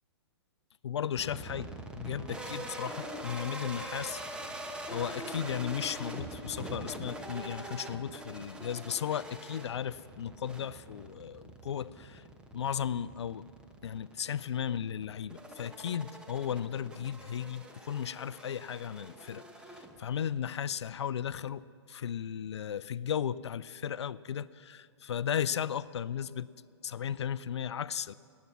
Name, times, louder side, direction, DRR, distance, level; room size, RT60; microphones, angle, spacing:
voice 1, 0.8-1.7 2.0-4.2 4.9-12.2 12.5-13.5 13.8-26.5 26.8-28.1, left 9 dB, 75° left, 18 dB, 0.4 m, -35 dB
sound 1, 1.0-6.4, right 5 dB, 75° right, 1.2 m, -61 dB
sound 2, 1.2-20.4, right 1 dB, 5° right, 1.0 m, -44 dB
19.5 x 8.3 x 6.0 m, 2.4 s
hypercardioid pair, 120°, 15 cm